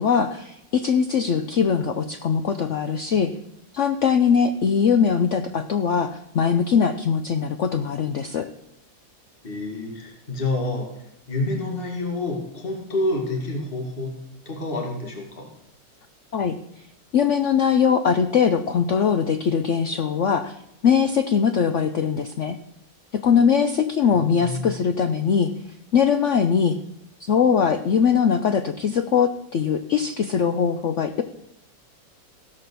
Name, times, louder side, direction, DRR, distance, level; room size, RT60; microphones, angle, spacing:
voice 1, 0.0-3.3 3.7-8.5 16.3-16.5 17.1-20.6 20.8-22.6 23.1-25.5 25.9-26.8 27.2-31.2, left 7 dB, 75° left, 8 dB, 0.6 m, -21 dB
voice 2, 9.4-10.9 11.3-14.1 14.5-15.5 24.0-24.7, left 2 dB, 30° left, 1 dB, 2.3 m, -28 dB
16.0 x 5.9 x 6.8 m, 0.80 s
omnidirectional pair, 2.0 m